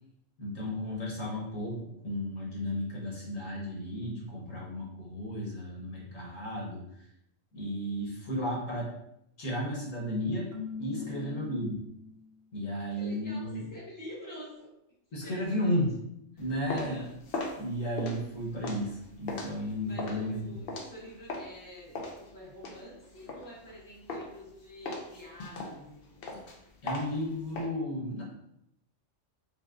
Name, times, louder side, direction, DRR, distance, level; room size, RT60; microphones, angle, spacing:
voice 1, 0.4-7.1 7.5-8.9 9.4-10.5 10.8-11.7 12.5-13.7 15.1-15.9 16.4-17.0 17.6-20.6 26.8-28.2, equal, 80° left, -4 dB, 1.5 m, -34 dB
Keyboard (musical), 10.5-12.5, left 6 dB, 75° right, 1.0 m, -42 dB
voice 2, 10.9-11.4 12.6-14.7 15.1-15.8 16.3-17.1 19.5-26.3, equal, 15° left, -6 dB, 1.2 m, -48 dB
sound 1, 16.4-21.6 21.9-23.8 24.1-24.5 24.8-27.6, left 2 dB, 55° left, 0.7 m, -38 dB
3.8 x 3.5 x 2.4 m, 0.79 s
omnidirectional pair, 1.3 m